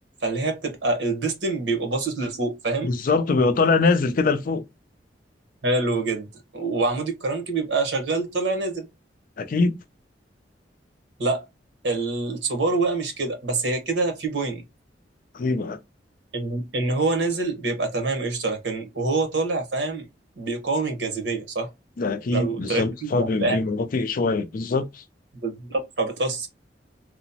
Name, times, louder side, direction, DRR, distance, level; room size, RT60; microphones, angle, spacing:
voice 1, 0.2-2.9 5.6-6.3 6.5-8.9 11.2-11.4 11.8-14.6 16.3-20.1 20.4-21.7 22.3-23.6 25.4-26.5, right 3 dB, 85° right, 1.0 m, -26 dB
voice 2, 2.8-4.6 9.4-9.7 15.3-15.8 22.0-25.0, left 3 dB, 50° left, 0.4 m, -23 dB
2.9 x 2.0 x 2.7 m
head